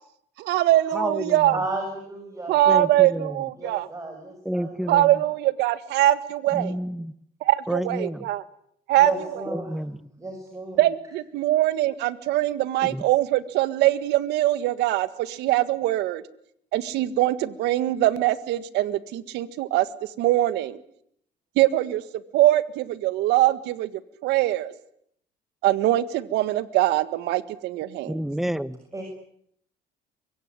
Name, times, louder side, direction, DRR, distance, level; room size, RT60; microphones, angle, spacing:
voice 1, 0.4-1.6 2.5-3.9 4.9-6.8 7.4-8.4 8.9-9.1 10.8-16.2 16.7-19.9 20.2-20.8 21.6-22.0 22.3-23.9 24.2-24.7 25.6-28.1, right 14 dB, 85° right, 15 dB, 1.8 m, -22 dB
voice 2, 0.9-1.6 2.7-3.4 4.4-5.2 6.5-7.1 7.7-8.2 9.5-10.0 12.8-13.0 28.0-28.8, equal, ahead, 16 dB, 1.2 m, -30 dB
voice 3, 1.5-2.5 3.6-4.8 5.1-5.2 9.0-9.8 10.2-10.8 28.9-29.0, right 2 dB, 20° right, 4 dB, 6.8 m, -33 dB
24.0 x 22.5 x 9.9 m, 0.69 s
cardioid pair, 110°, 17 cm